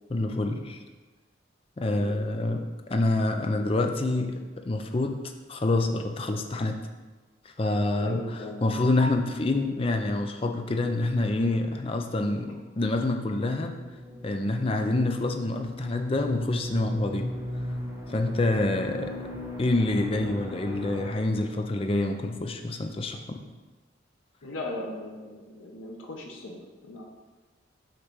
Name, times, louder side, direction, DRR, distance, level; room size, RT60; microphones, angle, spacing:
voice 1, 0.1-0.8 1.8-4.4 4.6-5.2 5.5-6.8 7.5-13.8 14.2-17.3 18.1-19.2 19.6-23.4, left 2 dB, 30° left, 5 dB, 0.5 m, -27 dB
voice 2, 1.8-2.5 3.6-3.7 8.0-8.6 24.4-27.0, left 1 dB, 80° left, 0 dB, 0.9 m, -38 dB
sound 1, 12.6-21.1, left 1 dB, 15° right, 0.8 m, -38 dB
6.5 x 3.3 x 6.0 m, 1.3 s
head